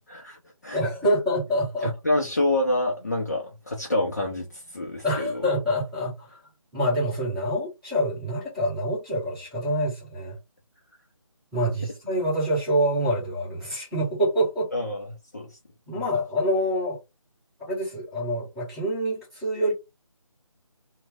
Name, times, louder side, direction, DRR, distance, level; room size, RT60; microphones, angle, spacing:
voice 1, 0.1-0.8 1.8-5.5 14.7-15.1 15.3-15.6, left 1 dB, 30° left, 0.5 m, -27 dB
voice 2, 0.7-1.9 3.0-3.1 5.0-6.4 6.7-10.4 11.5-14.7 15.9-17.0 17.6-19.7, equal, 5° right, 1.2 m, -26 dB
3.1 x 2.1 x 3.4 m
figure-of-eight pair, 165°, 18 cm